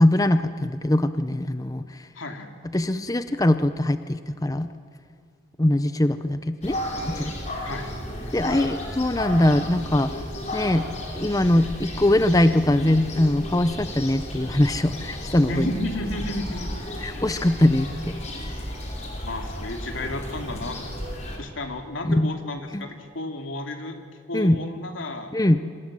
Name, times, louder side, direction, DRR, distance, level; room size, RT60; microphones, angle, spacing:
voice 1, 0.0-1.8 2.7-4.7 5.6-6.8 7.1-7.3 8.3-10.1 10.5-10.9 11.1-15.7 17.0-18.1 22.1-22.3 22.7-22.8 24.3-24.6 25.3-25.6, left 1 dB, 20° left, 11 dB, 0.6 m, -21 dB
voice 2, 2.1-2.6 7.6-7.9 15.5-16.8 17.1-17.2 19.2-20.8 21.4-24.0 24.3-25.3, left 1 dB, 85° left, 4 dB, 2.8 m, -32 dB
sound 1, 6.6-21.4, left 1 dB, 35° left, 5.0 m, -33 dB
27.0 x 26.0 x 7.6 m, 2.3 s
head